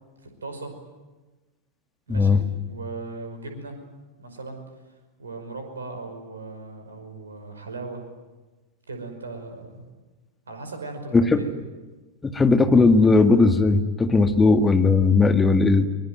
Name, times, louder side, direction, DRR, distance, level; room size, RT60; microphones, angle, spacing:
voice 1, 0.2-0.7 2.1-2.4 2.7-3.8 4.2-4.6 5.2-8.0 8.9-9.8 10.5-11.5, right 3 dB, 70° right, 6 dB, 5.4 m, -37 dB
voice 2, 11.1-11.4 12.2-15.9, left 3 dB, 15° left, 8 dB, 1.9 m, -17 dB
23.5 x 22.5 x 9.3 m, 1.2 s
figure-of-eight pair, 90°, 0 cm